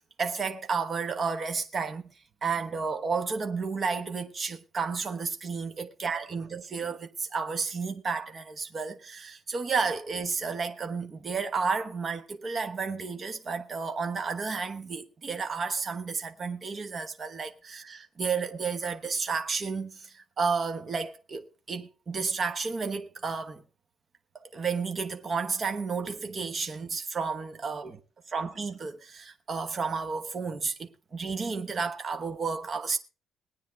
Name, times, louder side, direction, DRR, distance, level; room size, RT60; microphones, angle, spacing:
voice 1, 0.2-2.1 2.4-23.6 24.5-28.0 28.3-33.0, right 5 dB, 30° right, 1.0 m, -32 dB
20.5 x 9.2 x 3.5 m
cardioid pair, 175°, 0 cm